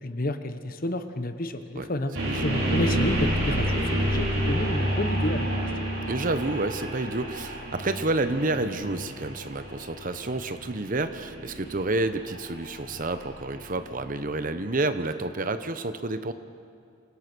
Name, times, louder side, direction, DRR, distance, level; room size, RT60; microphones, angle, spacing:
voice 1, 0.0-2.1 2.4-5.7, left 1 dB, 45° left, 9 dB, 1.1 m, -30 dB
sound 1, 2.1-14.1, equal, 80° right, 5.9 m, -29 dB
voice 2, 6.1-16.3, right 2 dB, 40° right, 10 dB, 0.9 m, -29 dB
27.0 x 17.5 x 6.2 m, 2.4 s
head